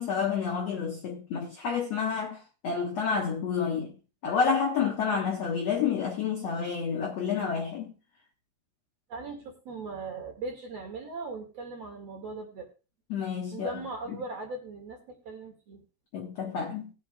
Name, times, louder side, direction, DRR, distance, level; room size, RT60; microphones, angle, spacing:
voice 1, 0.0-4.0 4.2-7.9 13.1-13.8 16.1-16.9, left 6 dB, 75° left, 1.5 m, -29 dB
voice 2, 9.1-12.7 13.5-15.8, right 3 dB, 45° right, 2.5 m, -39 dB
19.5 x 8.5 x 2.3 m
omnidirectional pair, 5.0 m